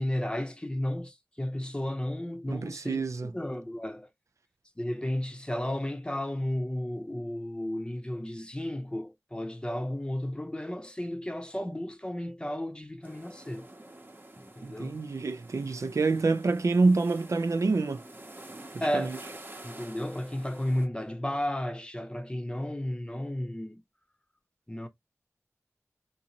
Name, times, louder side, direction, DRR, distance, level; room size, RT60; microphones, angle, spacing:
voice 1, 0.0-4.1 4.8-13.7 14.4-15.0 18.8-19.2 19.6-23.8 24.7-24.9, left 1 dB, 20° left, 0.6 m, -33 dB
voice 2, 2.5-3.3 14.6-18.0 18.9-19.2, right 3 dB, 85° right, 0.4 m, -27 dB
sound 1, 13.0-20.9, right 1 dB, 40° right, 0.8 m, -48 dB
3.8 x 2.6 x 2.9 m
wide cardioid pair, 60°, 5 cm